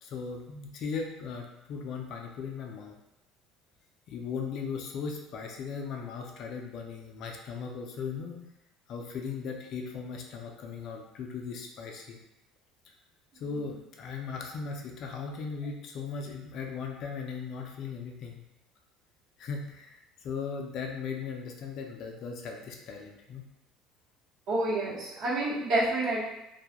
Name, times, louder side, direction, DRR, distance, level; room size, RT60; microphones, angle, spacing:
voice 1, 0.0-3.0 4.1-8.4 8.9-12.2 13.3-18.4 19.4-23.5, left 5 dB, 50° left, 2 dB, 0.4 m, -38 dB
voice 2, 24.5-26.2, right 2 dB, 55° right, -7 dB, 0.9 m, -28 dB
2.2 x 2.1 x 2.8 m, 0.87 s
cardioid pair, 145°, 0 cm